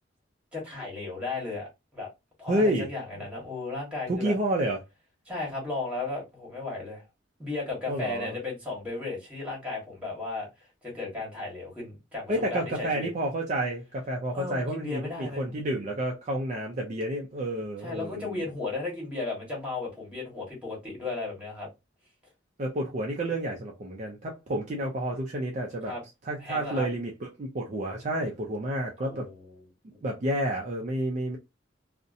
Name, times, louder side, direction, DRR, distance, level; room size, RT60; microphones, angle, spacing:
voice 1, 0.5-2.1 2.4-4.3 5.3-7.0 7.4-10.5 10.8-13.1 14.3-15.5 17.8-21.7 25.8-26.0 26.4-26.9 29.1-29.7, left 3 dB, 5° right, 1.3 m, -35 dB
voice 2, 2.5-2.9 4.1-4.8 7.9-8.4 12.3-18.4 22.6-25.9 26.2-27.1 27.4-29.3 30.0-31.4, right 1 dB, 40° right, 0.4 m, -30 dB
2.7 x 2.1 x 2.5 m
head